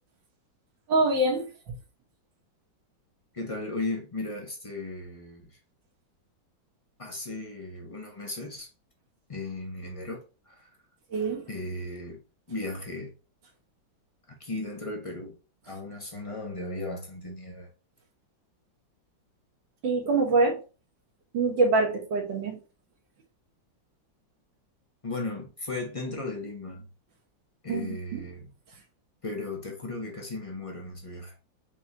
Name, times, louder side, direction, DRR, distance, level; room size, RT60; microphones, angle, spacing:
voice 1, 0.9-1.5 11.1-11.5 19.8-20.6 21.3-22.6 27.7-28.3, right 3 dB, 75° right, 2.1 m, -25 dB
voice 2, 3.3-5.6 7.0-8.7 9.3-10.7 11.5-12.2 12.5-13.1 14.3-15.3 15.6-17.7 25.0-26.9 27.6-28.5 29.2-31.3, left 2 dB, 30° left, 0.6 m, -36 dB
4.9 x 3.4 x 2.9 m
omnidirectional pair, 2.0 m